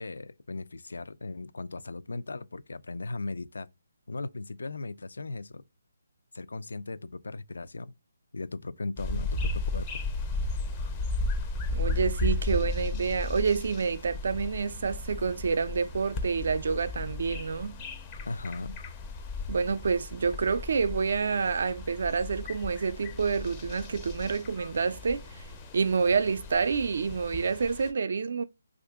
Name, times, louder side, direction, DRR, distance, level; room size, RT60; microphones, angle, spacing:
voice 1, 0.0-3.7 4.1-5.6 6.3-7.9 8.3-9.9 18.2-18.8, left 3 dB, 85° left, 0.3 m, -37 dB
sound 1, 9.0-27.9, left 2 dB, 20° left, 0.4 m, -35 dB
voice 2, 11.7-17.8 19.5-25.4 25.7-28.4, right 5 dB, 55° right, 0.4 m, -28 dB
2.8 x 2.4 x 3.5 m
hypercardioid pair, 165°, 0 cm